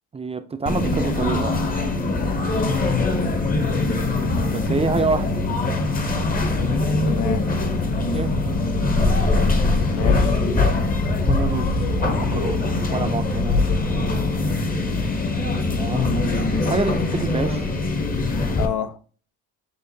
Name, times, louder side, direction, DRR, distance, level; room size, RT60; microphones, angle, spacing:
voice 1, 0.1-1.6 4.5-5.4 7.9-8.3 9.9-10.7 11.3-13.6 13.9-14.1 15.8-16.1 16.6-17.6, right 4 dB, 20° right, 0.4 m, -28 dB
sound 1, 0.7-18.7, left 2 dB, 30° left, 0.8 m, -22 dB
voice 2, 3.6-4.7 4.9-5.1 7.0-7.5 9.9-10.4 18.6-19.0, left 9 dB, 85° left, 0.5 m, -30 dB
6.4 x 2.5 x 2.7 m
cardioid pair, 90°, 30 cm